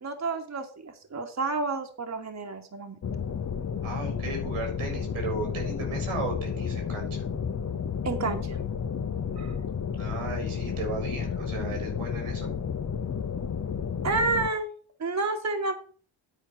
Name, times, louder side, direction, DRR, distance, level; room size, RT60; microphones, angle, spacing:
voice 1, 0.0-3.0 8.0-8.6 9.4-9.5 14.0-14.7 15.0-15.7, right 3 dB, 35° right, 4 dB, 1.6 m, -30 dB
sound 1, 3.0-14.5, left 7 dB, 35° left, 0.9 m, -32 dB
voice 2, 3.8-7.2 9.9-12.5, right 3 dB, 90° right, 3 dB, 4.1 m, -35 dB
9.7 x 4.4 x 7.1 m, 0.43 s
supercardioid pair, 55°, 50 cm